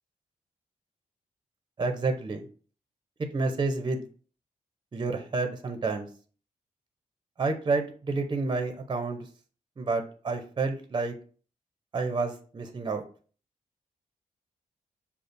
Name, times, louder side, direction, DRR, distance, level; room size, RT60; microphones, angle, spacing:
voice 1, 1.8-2.4 3.3-4.0 4.9-6.1 7.4-9.3 9.8-11.1 11.9-13.0, right 3 dB, 30° right, 6 dB, 0.6 m, -29 dB
6.5 x 2.4 x 2.6 m, 0.41 s
cardioid pair, 85°, 14 cm